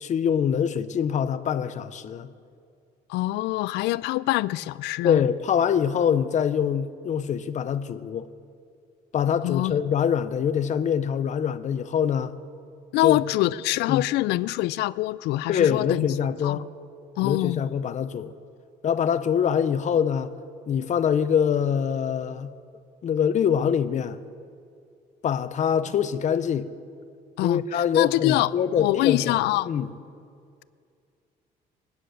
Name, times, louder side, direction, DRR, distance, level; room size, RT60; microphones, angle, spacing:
voice 1, 0.0-2.3 5.0-8.3 9.1-12.3 13.0-13.2 13.9-14.0 15.5-16.7 17.2-18.3 18.8-20.3 20.7-22.5 23.0-24.2 25.2-26.7 27.4-29.4 29.7-29.9, left 8 dB, 45° left, 0.8 m, -24 dB
voice 2, 3.1-5.2 9.4-9.7 12.9-16.1 16.4-16.6 17.2-17.7 27.4-28.5 28.8-29.7, left 17 dB, 85° left, 0.4 m, -25 dB
23.0 x 9.7 x 6.5 m
cardioid pair, 110°, 17 cm